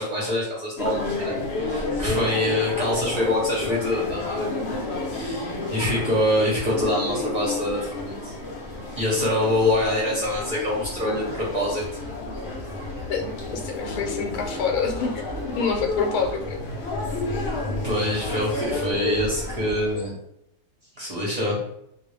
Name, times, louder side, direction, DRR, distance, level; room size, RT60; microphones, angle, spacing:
voice 1, 0.0-1.4 1.6-4.5 5.1-8.3 9.0-11.8 17.8-20.2 21.0-21.6, left 1 dB, 45° right, -5 dB, 0.6 m, -25 dB
sound 1, 0.8-20.1, left 2 dB, 60° left, 0.7 m, -31 dB
voice 2, 13.1-15.3 15.6-16.6 17.3-17.5, left 5 dB, 80° left, 3 dB, 1.1 m, -27 dB
2.5 x 2.0 x 3.0 m, 0.78 s
omnidirectional pair, 1.6 m